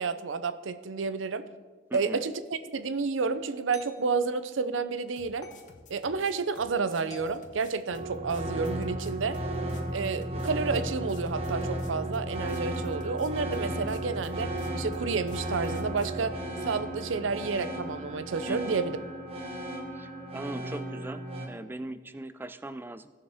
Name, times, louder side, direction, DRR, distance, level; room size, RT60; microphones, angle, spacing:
voice 1, 0.0-1.5 1.9-2.3 2.7-5.5 5.9-9.4 9.9-16.4 16.6-19.0, right 4 dB, 85° right, 12 dB, 0.6 m, -30 dB
sound 1, 1.9-2.2 3.7-4.0 5.4-5.7 7.1-8.5, equal, 20° left, 1.1 m, -48 dB
voice 2, 1.9-2.2 18.5-18.8 19.9-23.1, right 1 dB, 10° right, 12 dB, 0.3 m, -40 dB
sound 2, 5.2-16.2, left 2 dB, 40° left, 0.9 m, -53 dB
sound 3, 7.9-21.5, right 1 dB, 30° right, 1.2 m, -34 dB
16.5 x 6.7 x 3.5 m, 1.4 s
head